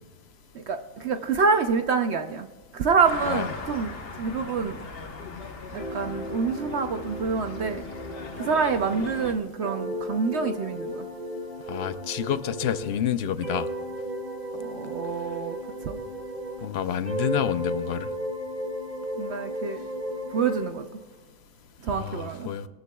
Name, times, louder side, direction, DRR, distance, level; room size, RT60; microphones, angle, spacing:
voice 1, 0.5-2.5 2.7-4.8 5.7-7.9 8.3-11.1 14.5-15.6 15.9-16.0 19.2-19.8 20.3-20.9 21.8-22.5, right 5 dB, 60° right, 7 dB, 0.8 m, -27 dB
sound 1, 3.0-9.3, left 3 dB, 45° left, 1.2 m, -39 dB
sound 2, 5.8-13.0 13.4-16.7 17.0-20.7, equal, 40° right, 2.3 m, -35 dB
voice 2, 11.7-13.7 16.6-18.1 21.9-22.7, left 9 dB, 60° left, 13 dB, 0.7 m, -29 dB
21.0 x 14.5 x 2.3 m, 1.3 s
omnidirectional pair, 1.4 m